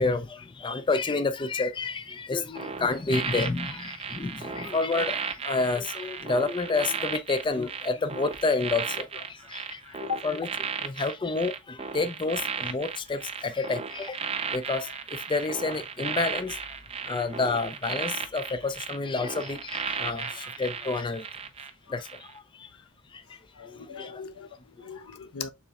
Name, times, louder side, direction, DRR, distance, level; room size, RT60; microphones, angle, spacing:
voice 1, 0.0-9.2 9.5-9.8 10.2-10.5 10.8-14.2 14.5-14.9 15.3-16.6 17.1-21.3 21.9-22.1 24.0-24.1, left 3 dB, 20° left, 0.4 m, -29 dB
sound 1, 2.6-21.7 22.0-22.3, right 6 dB, 30° right, 0.6 m, -35 dB
voice 2, 9.9-10.2 23.6-24.5 24.8-25.5, left 6 dB, 85° left, 0.6 m, -37 dB
6.8 x 3.2 x 2.3 m
head